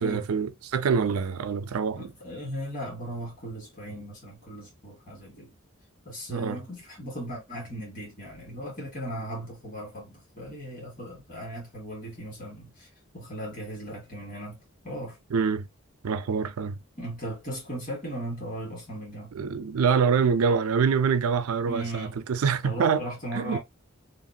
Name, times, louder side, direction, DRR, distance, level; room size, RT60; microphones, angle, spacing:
voice 1, 0.0-2.1 6.3-6.6 15.3-15.6 16.0-16.8 19.3-23.0 23.3-23.6, right 6 dB, 85° right, 0.4 m, -25 dB
voice 2, 1.9-5.5 6.0-12.9 13.1-14.6 14.8-15.2 17.0-19.3 21.6-22.1 22.6-23.6, right 1 dB, 40° left, 1.7 m, -37 dB
2.8 x 2.6 x 2.6 m
head